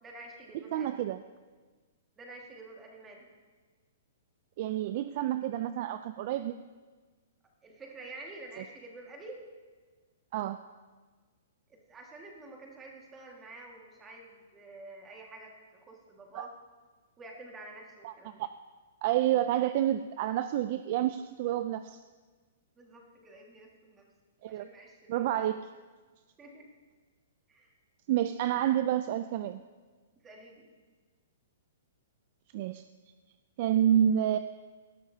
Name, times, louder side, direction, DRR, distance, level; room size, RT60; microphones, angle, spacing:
voice 1, 0.0-1.0 2.2-3.3 7.6-9.4 11.7-15.5 15.8-16.5 17.2-18.4 22.8-24.1 24.5-25.5 26.4-26.7 27.5-27.7 30.2-30.7, right 2 dB, 15° right, 0 dB, 1.7 m, -49 dB
voice 2, 0.7-1.2 4.6-6.5 10.3-10.6 16.3-16.5 18.0-18.1 18.4-18.5 19.0-22.0 24.4-24.7 25.1-25.6 28.1-29.6 32.5-32.8 33.6-34.4, right 11 dB, 40° right, 11 dB, 0.3 m, -29 dB
18.5 x 12.0 x 2.7 m, 1.4 s
hypercardioid pair, 165°, 0 cm